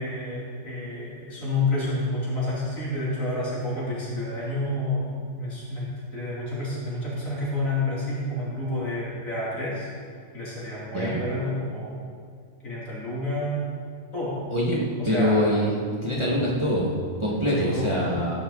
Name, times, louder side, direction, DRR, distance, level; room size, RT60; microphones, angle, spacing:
voice 1, 0.0-5.1 5.4-5.9 6.1-9.9 10.3-12.0 12.6-13.7 14.1-14.4 15.0-15.6 16.2-16.3 17.6-18.2, left 1 dB, 85° left, -8 dB, 3.6 m, -29 dB
voice 2, 10.9-11.2 14.5-15.7 16.0-18.4, equal, 20° right, -6 dB, 2.0 m, -24 dB
16.0 x 10.5 x 4.1 m, 2.1 s
omnidirectional pair, 1.4 m